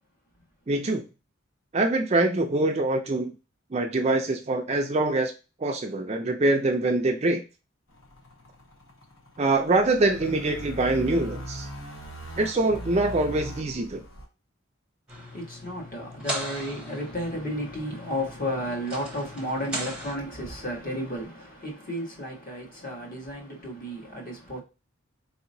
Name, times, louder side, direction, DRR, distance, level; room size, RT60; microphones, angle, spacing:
voice 1, 0.7-1.0 1.7-3.3 3.7-5.3 5.6-7.4 9.4-11.7 12.4-14.0, right 2 dB, 30° right, 0.4 m, -24 dB
sound 1, 7.9-14.3, equal, 60° left, 1.0 m, -40 dB
voice 2, 15.1-24.6, equal, 40° left, 1.3 m, -33 dB
sound 2, 15.1-20.1, right 1 dB, 5° right, 0.8 m, -38 dB
4.1 x 2.9 x 2.6 m
head